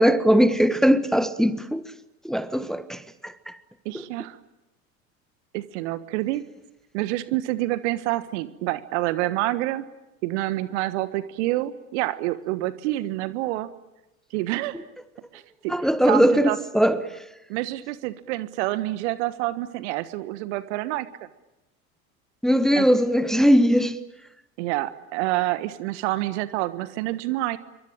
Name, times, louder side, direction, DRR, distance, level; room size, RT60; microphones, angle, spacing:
voice 1, 0.0-1.8 2.2-3.6 15.7-17.0 22.4-24.0, equal, ahead, 1.4 m, -20 dB
voice 2, 3.8-4.4 5.5-6.5 6.9-9.9 10.2-13.7 14.3-14.8 15.3-16.6 17.5-21.1 22.8-22.9 24.6-27.6, right 17 dB, 55° right, 1.5 m, -27 dB
27.0 x 24.0 x 9.0 m
figure-of-eight pair, 75°, 42 cm